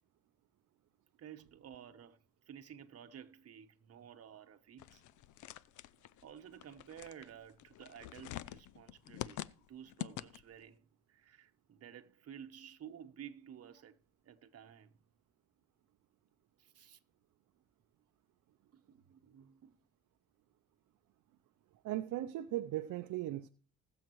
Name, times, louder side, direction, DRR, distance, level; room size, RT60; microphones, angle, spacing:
voice 1, 1.2-2.2 2.5-5.0 6.2-14.0 14.2-14.9 16.6-17.0 18.7-19.8, right 9 dB, 55° right, 1.1 m, -53 dB
sound 1, 4.8-10.6, left 13 dB, 75° left, 0.5 m, -47 dB
voice 2, 21.8-23.5, right 14 dB, 75° right, 0.6 m, -38 dB
20.5 x 7.3 x 3.1 m
cardioid pair, 90°, 30 cm